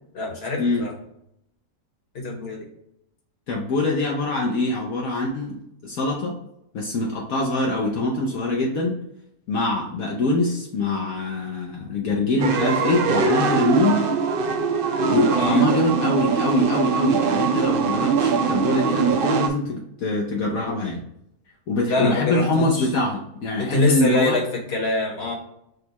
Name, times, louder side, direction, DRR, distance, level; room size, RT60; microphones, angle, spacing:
voice 1, 0.1-0.9 2.1-2.6 15.4-15.7 21.9-22.9 23.6-25.3, left 2 dB, 45° left, 0 dB, 1.4 m, -24 dB
voice 2, 3.5-6.4 6.7-9.0 9.5-14.0 15.1-21.0 21.7-24.4, left 2 dB, 70° left, -2 dB, 1.2 m, -24 dB
sound 1, 12.4-19.5, right 5 dB, 70° right, 0.5 m, -22 dB
6.3 x 2.4 x 2.9 m, 0.78 s
omnidirectional pair, 1.6 m